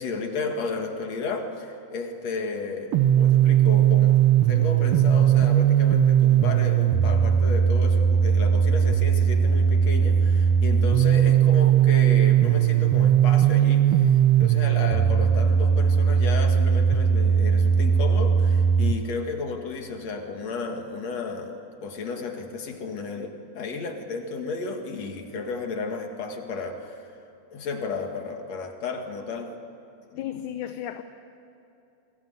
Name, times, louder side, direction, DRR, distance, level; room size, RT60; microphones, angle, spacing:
voice 1, 0.0-27.0 27.5-29.5 30.1-30.5, left 4 dB, 60° left, 3 dB, 3.0 m, -33 dB
sound 1, 2.9-18.9, right 8 dB, 65° right, 1.4 m, -19 dB
voice 2, 30.2-31.0, left 11 dB, 75° left, 8 dB, 2.2 m, -33 dB
28.5 x 21.5 x 8.1 m, 2.9 s
omnidirectional pair, 3.6 m